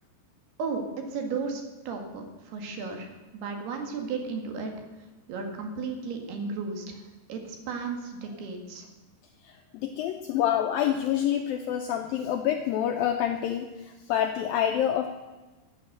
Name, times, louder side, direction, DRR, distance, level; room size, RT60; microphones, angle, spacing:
voice 1, 1.1-4.7 5.3-7.0 7.3-8.9, right 4 dB, 70° right, 4 dB, 3.6 m, -34 dB
voice 2, 9.4-15.1, left 10 dB, 90° left, 5 dB, 2.0 m, -27 dB
16.0 x 8.8 x 6.7 m, 1.2 s
omnidirectional pair, 5.0 m